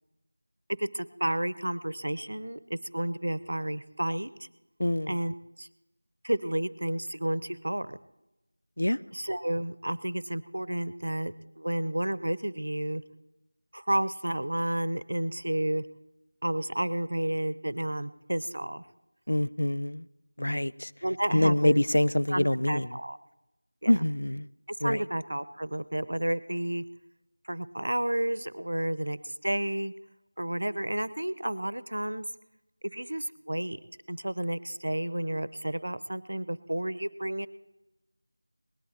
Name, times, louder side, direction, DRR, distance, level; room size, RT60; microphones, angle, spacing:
voice 1, 0.8-4.3 5.1-5.7 6.2-8.0 9.1-13.0 13.7-15.8 16.4-18.8 21.0-21.8 22.3-23.2 23.8-24.0 24.7-26.8 27.4-29.9 30.4-32.3 32.9-33.8 34.1-37.5, right 1 dB, 75° right, 17 dB, 0.8 m, -31 dB
voice 2, 4.8-5.1 8.8-9.0 19.3-20.1 20.4-20.9 21.3-22.9 23.9-24.5 24.8-25.0, left 1 dB, 85° left, 15 dB, 0.5 m, -25 dB
19.0 x 11.5 x 4.4 m, 0.95 s
figure-of-eight pair, 180°, 0 cm